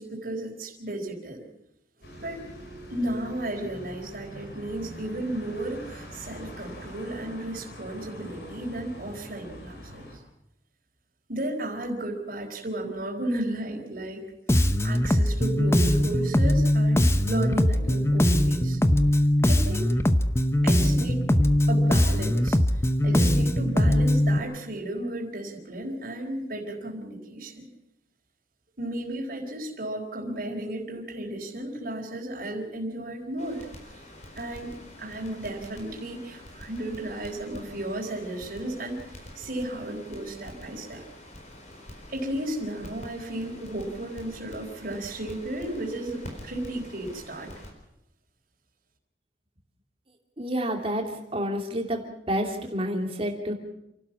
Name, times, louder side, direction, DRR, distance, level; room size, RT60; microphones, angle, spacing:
voice 1, 0.0-1.4 2.2-2.5 2.9-10.2 11.3-14.2 14.8-18.8 19.4-19.9 20.6-21.2 21.7-22.6 23.0-27.7 28.8-33.7 34.3-34.7 35.0-39.0 39.3-41.0 42.1-47.5, right 1 dB, 50° right, -2 dB, 4.2 m, -34 dB
sound 1, 2.0-10.2, equal, 65° left, 5.2 m, -44 dB
Bass guitar, 14.5-24.4, left 1 dB, 15° left, 0.8 m, -21 dB
Crackle, 33.4-47.7, left 1 dB, 40° left, 4.5 m, -46 dB
voice 2, 50.4-52.0 52.3-53.5, equal, 30° right, 2 dB, 3.0 m, -29 dB
29.0 x 12.0 x 7.3 m, 0.84 s
head